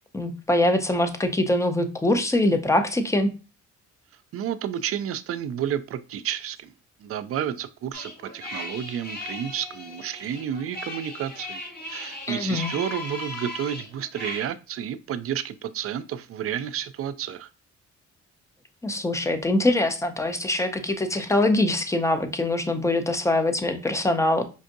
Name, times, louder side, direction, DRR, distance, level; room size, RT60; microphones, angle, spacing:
voice 1, 0.1-3.3 12.3-12.7 18.8-24.4, left 1 dB, 10° left, 0.5 m, -23 dB
voice 2, 4.3-6.7 7.0-11.6 11.9-17.5, right 9 dB, 50° right, 0.4 m, -31 dB
sound 1, 7.9-14.5, left 2 dB, 30° left, 1.1 m, -37 dB
5.2 x 2.4 x 2.6 m
cardioid pair, 90°, 30 cm